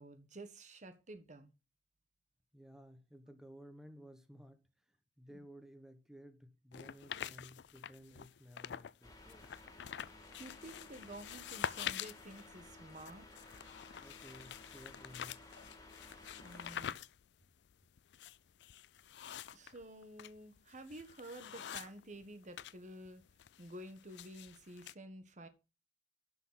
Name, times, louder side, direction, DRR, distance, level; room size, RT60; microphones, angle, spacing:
voice 1, 0.0-1.5 5.3-5.4 10.0-13.3 16.4-17.0 19.5-23.2 23.6-25.5, right 1 dB, 45° right, 1.4 m, -51 dB
voice 2, 2.5-9.5 14.0-15.4, equal, 5° right, 1.3 m, -56 dB
sound 1, 6.7-9.0 9.3-22.8 23.1-24.9, left 9 dB, 75° left, 0.4 m, -46 dB
sound 2, 9.0-16.9, left 2 dB, 20° left, 2.4 m, -56 dB
11.0 x 6.2 x 4.0 m
head